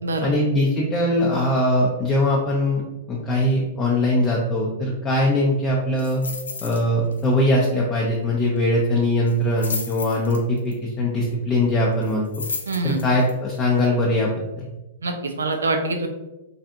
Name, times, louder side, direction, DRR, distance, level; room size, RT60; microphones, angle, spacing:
voice 1, 0.2-2.8 3.1-6.2 6.6-12.3 12.8-14.7, left 1 dB, 25° left, -3 dB, 0.5 m, -21 dB
sound 1, 6.0-6.8 7.1-7.4 7.7-7.8 9.3-10.7 12.0-13.3 13.8-13.9, left 4 dB, 90° left, 0.4 m, -33 dB
voice 2, 12.7-13.0 15.0-16.1, right 2 dB, 85° right, 5 dB, 0.4 m, -24 dB
3.3 x 2.6 x 2.3 m, 1.0 s
hypercardioid pair, 115°, 0 cm